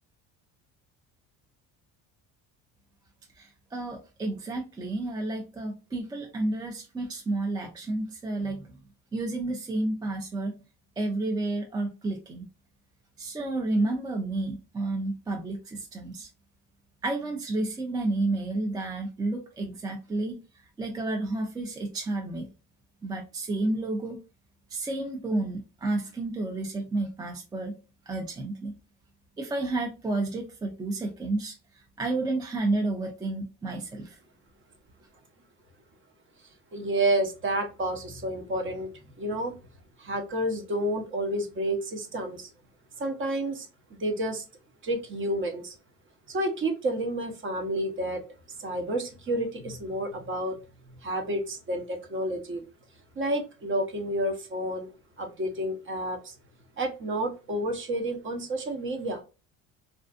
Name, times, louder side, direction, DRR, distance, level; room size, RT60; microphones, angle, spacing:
voice 1, 3.4-8.7 9.1-10.5 11.0-12.4 13.2-16.3 17.0-20.4 20.8-22.5 23.0-24.2 24.7-27.7 28.1-28.7 29.4-31.5 32.0-34.2, right 2 dB, 10° right, 1 dB, 0.4 m, -31 dB
voice 2, 36.7-38.9 39.2-39.6 40.0-42.5 43.0-44.4 44.8-45.7 46.3-48.2 48.6-50.6 51.0-52.6 53.2-54.9 55.2-56.3 56.8-59.2, right 1 dB, 35° right, 5 dB, 0.8 m, -30 dB
2.5 x 2.4 x 2.3 m, 0.30 s
cardioid pair, 115°, 34 cm